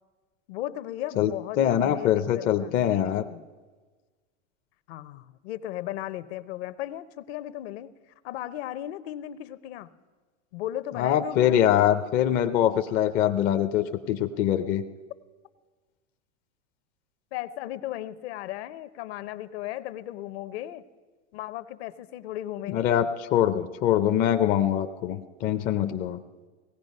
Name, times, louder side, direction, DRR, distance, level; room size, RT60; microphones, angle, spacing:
voice 1, 0.5-3.5 4.9-7.9 8.2-9.9 10.5-11.6 17.3-20.8 21.3-23.0, left 13 dB, 60° left, 13 dB, 0.8 m, -36 dB
voice 2, 1.6-3.2 11.0-14.8 22.7-26.2, left 10 dB, 25° left, 8 dB, 0.4 m, -23 dB
18.0 x 15.0 x 5.4 m, 1.4 s
supercardioid pair, 135°, 37 cm